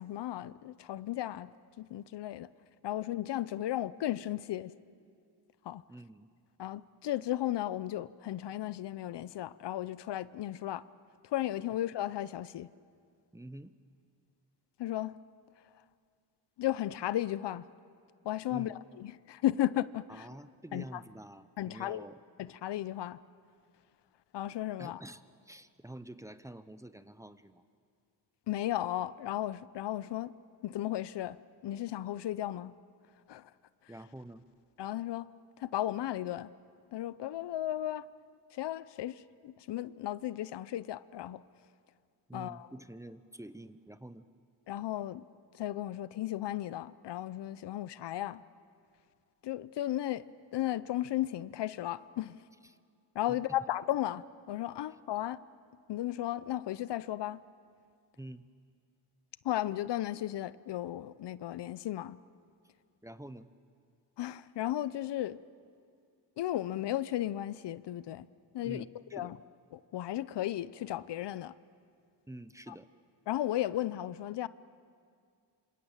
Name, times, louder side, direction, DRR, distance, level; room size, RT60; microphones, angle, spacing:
voice 1, 0.0-2.5 2.8-4.7 5.6-5.8 6.6-10.8 11.2-12.7 14.8-15.2 16.6-17.7 18.2-20.3 20.7-20.8 21.6-22.0 22.4-23.2 24.3-25.0 28.5-30.3 30.6-31.4 31.6-32.7 33.3-33.5 34.8-35.3 35.6-36.5 36.9-38.1 38.5-41.4 42.3-42.7 44.7-45.2 45.5-48.4 49.4-50.2 50.5-52.4 53.1-55.4 55.9-57.4 59.4-62.2 64.2-65.4 66.4-68.3 68.5-68.8 69.1-69.4 69.7-71.5 72.7-72.8 73.3-74.5, left 13 dB, 70° left, 0.7 m, -35 dB
voice 2, 5.9-6.3 13.3-13.7 18.5-18.8 20.1-22.2 24.8-27.7 33.9-34.4 42.3-44.3 52.6-52.8 53.3-53.4 58.2-58.5 63.0-63.5 68.6-69.4 72.3-72.9, right 1 dB, 5° right, 0.7 m, -47 dB
27.0 x 26.0 x 7.3 m
cardioid pair, 115°, 42 cm